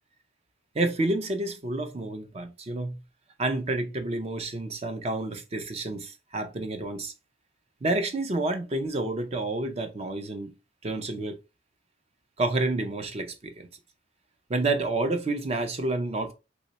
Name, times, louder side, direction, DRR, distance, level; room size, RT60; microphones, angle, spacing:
voice 1, 0.7-3.0 3.4-7.1 7.8-10.5 10.8-11.4 12.4-13.7 14.5-16.3, right 2 dB, 30° right, 0.4 m, -29 dB
3.0 x 2.2 x 3.9 m
head